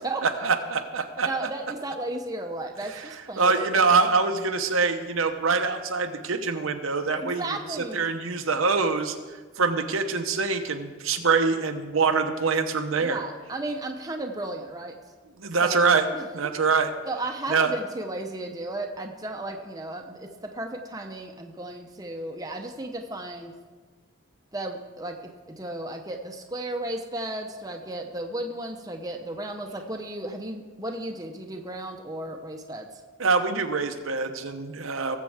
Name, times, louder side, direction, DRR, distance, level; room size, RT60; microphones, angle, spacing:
voice 1, 0.2-1.5 2.9-3.1 3.4-7.4 7.9-9.1 9.6-13.2 15.4-16.1 16.3-16.9 17.5-17.7 33.2-35.2, right 4 dB, 80° right, 6 dB, 0.9 m, -24 dB
voice 2, 1.2-3.7 7.2-8.0 13.0-14.9 15.6-16.5 17.1-23.5 24.5-32.9, right 2 dB, 20° right, 2 dB, 0.8 m, -34 dB
19.5 x 7.5 x 3.5 m, 1.4 s
head